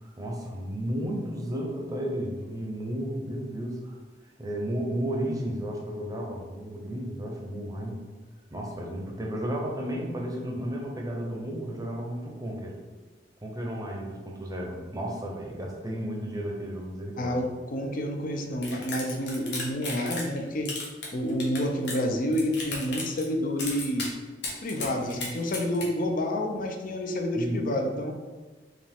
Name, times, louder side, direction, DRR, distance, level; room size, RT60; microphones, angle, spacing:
voice 1, 0.0-4.0 4.4-8.0 8.5-12.8 13.4-17.4 27.3-27.6, equal, 20° right, -1 dB, 0.7 m, -33 dB
voice 2, 17.2-20.7 21.1-24.1 24.6-28.2, left 1 dB, 50° left, 4 dB, 0.6 m, -29 dB
sound 1, 18.6-20.4 20.6-22.0 22.3-23.3 23.6-24.1 24.4-25.9, left 3 dB, 70° left, 1.2 m, -35 dB
4.8 x 3.0 x 3.5 m, 1.3 s
head